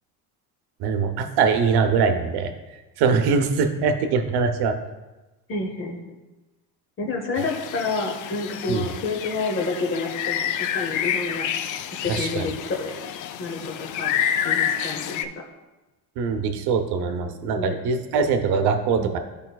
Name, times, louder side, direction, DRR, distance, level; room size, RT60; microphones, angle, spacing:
voice 1, 0.8-2.5 3.0-4.7 8.7-8.9 12.1-12.5 16.2-19.2, right 5 dB, 65° right, 7 dB, 0.9 m, -22 dB
voice 2, 5.5-6.2 7.0-10.5 10.7-11.5 11.9-13.1 13.4-14.2 14.4-15.2 17.1-17.8 19.0-19.2, left 3 dB, 30° left, 1 dB, 0.9 m, -29 dB
sound 1, 7.4-15.2, left 9 dB, 50° left, 0.4 m, -28 dB
12.0 x 5.2 x 2.3 m, 1.1 s
cardioid pair, 155°, 42 cm